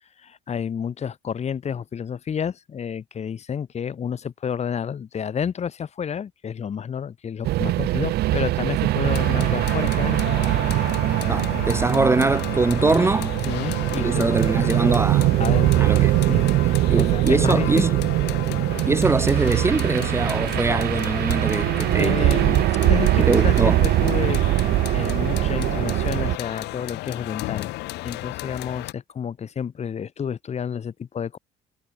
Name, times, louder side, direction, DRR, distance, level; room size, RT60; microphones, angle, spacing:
voice 1, 0.2-10.3 13.5-14.3 15.4-15.9 16.3-17.8 18.5-18.6 22.0-24.6 24.9-27.7 28.0-31.4, left 7 dB, 40° left, 2.7 m, -30 dB
sound 1, 7.4-26.4, right 16 dB, 70° right, 0.7 m, -22 dB
sound 2, 9.0-28.9, left 20 dB, 90° left, 3.2 m, -34 dB
voice 2, 11.3-13.4 14.0-15.3 15.8-16.1 16.9-18.0 18.9-22.3 23.2-23.8, right 3 dB, 15° right, 1.0 m, -22 dB
cardioid pair, 110°, 17 cm